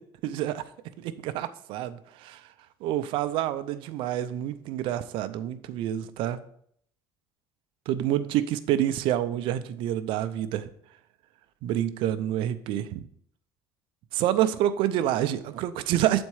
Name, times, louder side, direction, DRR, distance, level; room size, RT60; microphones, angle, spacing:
voice 1, 0.2-0.6 1.0-2.4 2.8-6.4 7.9-10.7 11.6-13.1 14.1-16.2, right 12 dB, 70° right, 12 dB, 0.6 m, -27 dB
8.2 x 4.3 x 4.7 m, 0.65 s
cardioid pair, 115°, 9 cm